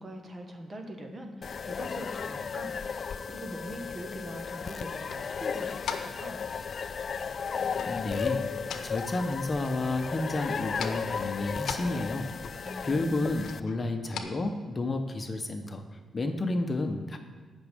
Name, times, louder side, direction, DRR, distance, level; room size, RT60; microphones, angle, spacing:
voice 1, 0.0-2.7 3.2-6.4 12.6-13.2, right 1 dB, 35° right, 4 dB, 1.6 m, -42 dB
sound 1, 1.4-13.6, left 6 dB, 55° left, 0.3 m, -35 dB
sound 2, 5.8-6.3 7.7-8.0 8.4-9.4 9.6-10.3 10.7-11.1 11.6-12.5 13.4-14.2, left 7 dB, 75° left, 0.9 m, -40 dB
voice 2, 7.9-17.2, left 2 dB, 35° left, 5 dB, 1.0 m, -31 dB
18.5 x 6.2 x 3.6 m, 1.5 s
cardioid pair, 70°, 0 cm